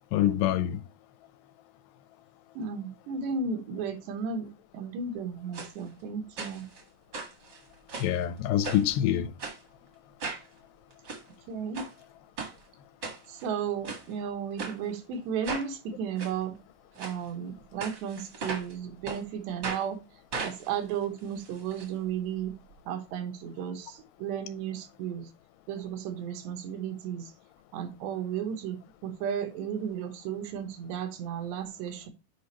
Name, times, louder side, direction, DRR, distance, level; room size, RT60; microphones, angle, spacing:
voice 1, 0.1-0.8 8.0-9.3, left 11 dB, 85° left, 2.8 m, -25 dB
voice 2, 2.6-4.5 4.7-6.7 11.5-11.8 13.3-16.5 17.0-20.0 20.4-22.6 22.9-25.3 25.7-27.2 27.7-32.1, right 7 dB, 85° right, 3.4 m, -34 dB
sound 1, 5.5-5.7 6.4-6.8 7.1-8.2 8.6-9.0 9.4-9.6 10.2-10.5 10.9-11.2 11.7-11.9 12.4-12.5 13.0-13.5 13.8-14.0 14.6-14.8 15.4-15.7 16.2-16.3 17.0-17.2 17.8-18.7 19.1-19.2 19.6-19.8 20.3-21.9 22.1-22.2 22.5-22.6, right 4 dB, 60° right, 1.0 m, -37 dB
10.0 x 5.0 x 2.9 m
omnidirectional pair, 4.9 m